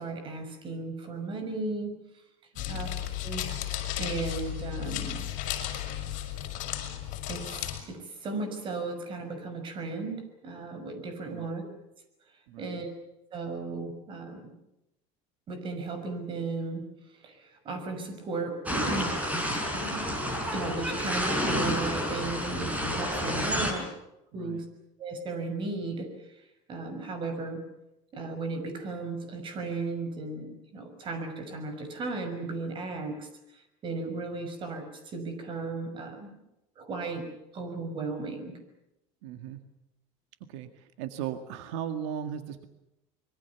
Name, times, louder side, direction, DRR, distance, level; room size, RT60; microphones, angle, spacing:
voice 1, 0.0-1.9 2.7-2.9 3.2-3.4 4.0-5.3 7.3-11.7 12.6-12.9 13.3-14.5 15.5-16.8 17.2-19.2 19.7-20.2 20.5-23.9 24.3-24.6 25.0-26.1 26.7-27.6 28.1-33.3 33.8-36.4 36.8-37.2 37.5-38.5, right 3 dB, 35° right, 7 dB, 6.2 m, -35 dB
sound 1, 2.6-7.8, left 12 dB, 55° left, 5.7 m, -34 dB
voice 2, 2.6-2.9 11.3-11.5 12.5-12.8 24.3-24.6 39.2-39.7 40.5-42.7, right 9 dB, 85° right, 8 dB, 1.9 m, -37 dB
sound 2, 18.7-23.7, equal, 10° right, 5.5 m, -30 dB
25.5 x 23.0 x 7.1 m, 0.88 s
cardioid pair, 150°, 15 cm